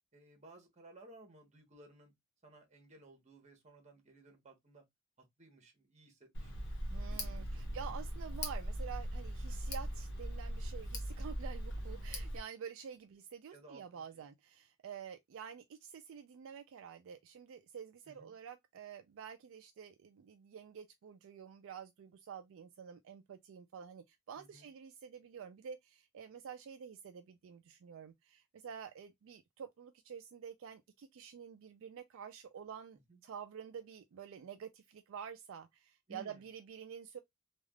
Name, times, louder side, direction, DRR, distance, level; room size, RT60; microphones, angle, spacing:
voice 1, 0.1-2.1 2.4-4.8 5.4-6.6 6.9-7.8 13.5-14.2 18.1-18.4 24.3-24.7 33.1-33.2 36.1-36.4, right 2 dB, 35° right, 1.0 m, -58 dB
Tick, 6.3-12.4, equal, 55° left, 1.0 m, -40 dB
voice 2, 6.9-37.2, right 7 dB, 65° right, 0.3 m, -49 dB
3.3 x 2.4 x 2.2 m
head